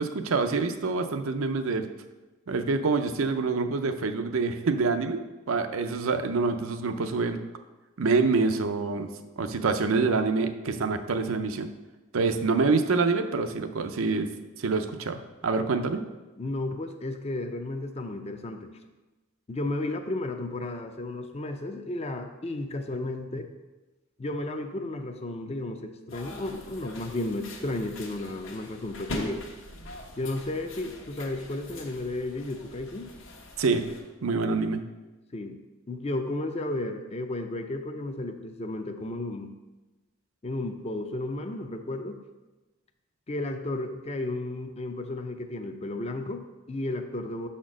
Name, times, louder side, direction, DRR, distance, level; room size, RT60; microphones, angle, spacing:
voice 1, 0.0-1.9 2.5-5.2 5.5-7.4 8.0-9.1 9.4-11.7 12.1-14.3 14.6-16.0 33.6-33.8 34.2-34.8, right 4 dB, 75° right, 8 dB, 0.5 m, -26 dB
voice 2, 16.4-18.7 19.5-23.5 24.2-29.4 30.2-33.1 35.3-35.6 35.9-39.5 40.4-42.2 43.3-47.5, left 2 dB, 30° left, 6 dB, 0.5 m, -33 dB
sound 1, 26.1-34.0, left 1 dB, 65° left, 1.1 m, -42 dB
5.9 x 4.3 x 6.1 m, 1.1 s
head